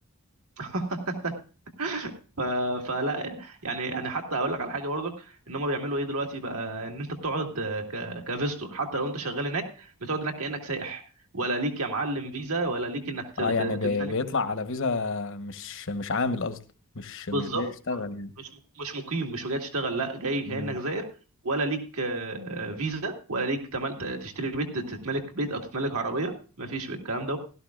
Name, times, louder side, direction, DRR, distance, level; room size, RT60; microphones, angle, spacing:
voice 1, 0.6-1.4 1.8-11.0 11.3-14.1 17.3-18.0 18.4-18.5 18.8-21.1 21.4-27.4, right 2 dB, 75° right, 1.9 m, -31 dB
voice 2, 13.4-16.6 16.9-18.3 20.5-20.7, left 3 dB, 60° left, 1.1 m, -30 dB
16.5 x 12.5 x 2.4 m
head